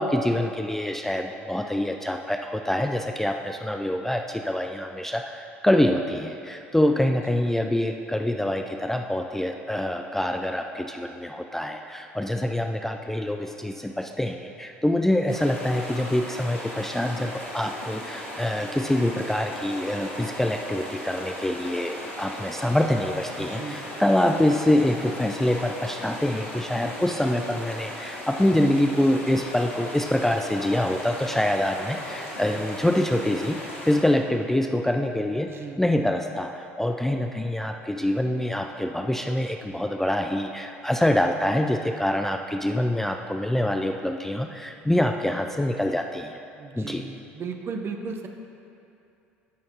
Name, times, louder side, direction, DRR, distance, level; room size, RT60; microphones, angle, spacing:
voice 1, 0.0-33.6 33.8-35.5 35.8-46.4 46.8-47.1, left 1 dB, 5° left, 4 dB, 0.3 m, -25 dB
sound 1, 15.3-34.0, left 1 dB, 75° left, 1.3 m, -37 dB
voice 2, 23.4-23.8 35.4-35.8 46.6-48.3, right 5 dB, 35° right, 4 dB, 0.8 m, -36 dB
14.5 x 6.3 x 2.8 m, 2.7 s
figure-of-eight pair, 60°, 7 cm